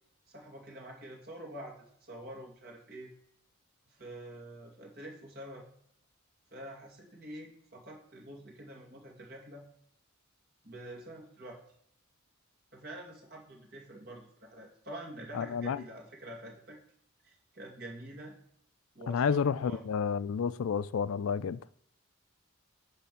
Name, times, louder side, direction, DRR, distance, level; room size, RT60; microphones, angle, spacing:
voice 1, 0.3-3.1 3.9-5.6 6.5-9.7 10.6-11.6 12.7-16.8 17.2-18.3 18.9-19.8, right 1 dB, 45° right, 2.4 m, -47 dB
voice 2, 15.3-15.8 19.1-21.6, left 6 dB, 80° left, 0.4 m, -30 dB
10.0 x 3.4 x 7.0 m
head